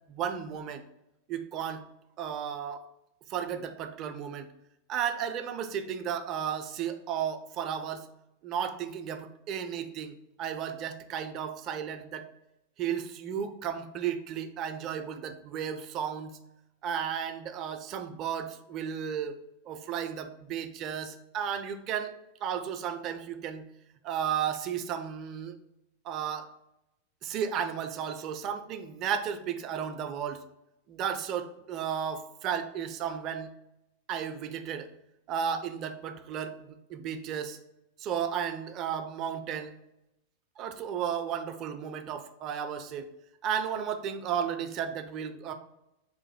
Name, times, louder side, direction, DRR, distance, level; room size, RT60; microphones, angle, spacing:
voice 1, 0.1-0.8 1.3-1.8 2.2-2.8 3.3-4.5 4.9-8.1 8.4-12.3 12.8-16.4 16.8-19.3 19.7-22.1 22.4-23.7 24.0-25.5 26.0-26.5 27.2-30.4 30.9-33.5 34.1-34.9 35.3-37.6 38.0-39.7 40.6-43.1 43.4-45.5, right 8 dB, 35° right, 8 dB, 0.4 m, -34 dB
3.7 x 2.6 x 3.9 m, 0.87 s
figure-of-eight pair, 90°, 0 cm